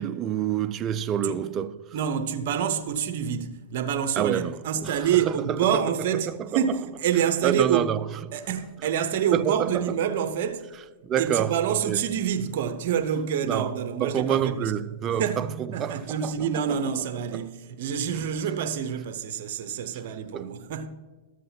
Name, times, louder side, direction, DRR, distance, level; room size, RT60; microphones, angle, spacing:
voice 1, 0.0-1.8 4.2-5.6 6.5-6.6 7.4-8.0 9.3-9.8 11.0-11.6 11.9-12.0 13.4-13.7 14.0-16.8 17.3-17.4 20.3-20.5, right 9 dB, 30° right, 0.4 m, -27 dB
voice 2, 1.9-7.9 8.3-10.7 11.2-14.7 15.2-20.9, right 8 dB, 55° right, 0.7 m, -27 dB
13.0 x 7.6 x 2.8 m
hypercardioid pair, 130°, 0 cm